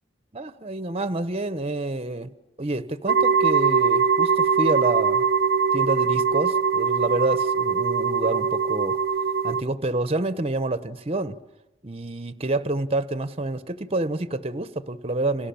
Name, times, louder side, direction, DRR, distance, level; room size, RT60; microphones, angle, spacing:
voice 1, 0.3-2.3 2.6-5.3 5.7-9.0 9.4-11.4 11.8-15.5, right 2 dB, 30° right, 1.1 m, -28 dB
sound 1, 3.1-9.6, right 6 dB, 55° right, 1.0 m, -22 dB
30.0 x 27.5 x 7.1 m
head